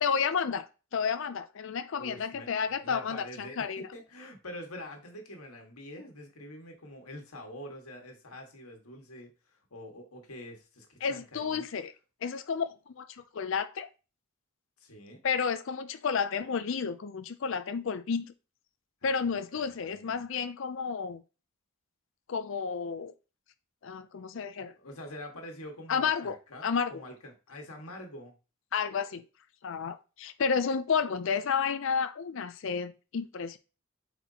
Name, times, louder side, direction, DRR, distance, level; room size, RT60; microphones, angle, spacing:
voice 1, 0.0-0.7 0.9-3.9 11.0-11.9 12.2-13.9 15.2-18.3 19.0-21.2 22.3-23.1 23.8-24.7 25.9-26.4 26.6-27.0 28.7-29.2 29.6-33.6, left 6 dB, 60° left, 0.4 m, -31 dB
voice 2, 2.0-9.3 9.7-11.6 14.8-15.2 19.2-20.2 24.8-28.3, left 1 dB, 80° left, 1.7 m, -46 dB
8.1 x 4.3 x 2.8 m
head